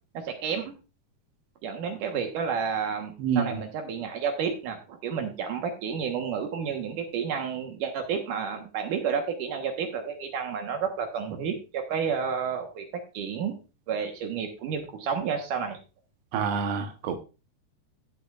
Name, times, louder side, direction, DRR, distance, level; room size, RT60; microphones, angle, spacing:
voice 1, 0.1-0.7 1.6-13.6 13.9-15.8, right 6 dB, 65° right, 4 dB, 2.4 m, -31 dB
voice 2, 3.2-3.6 16.3-17.2, right 7 dB, 85° right, 7 dB, 3.3 m, -27 dB
16.0 x 7.1 x 2.5 m, 0.31 s
omnidirectional pair, 4.8 m